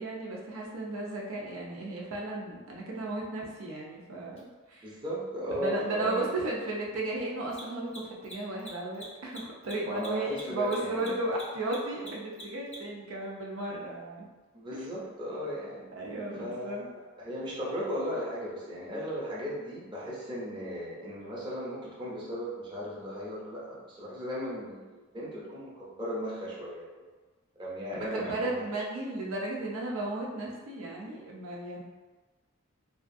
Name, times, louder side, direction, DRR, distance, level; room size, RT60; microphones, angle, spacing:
voice 1, 0.0-5.0 5.5-14.3 14.7-14.9 15.9-16.9 18.9-19.0 28.1-31.8, right 2 dB, 90° right, -3 dB, 0.5 m, -35 dB
Mechanisms, 4.4-4.5 7.4-13.0, equal, 30° left, 0.5 m, -46 dB
voice 2, 4.8-6.3 9.9-11.1 14.5-15.9 16.4-16.9 17.2-27.1 27.6-28.5, equal, 25° right, -7 dB, 0.6 m, -36 dB
2.7 x 2.4 x 2.6 m, 1.2 s
head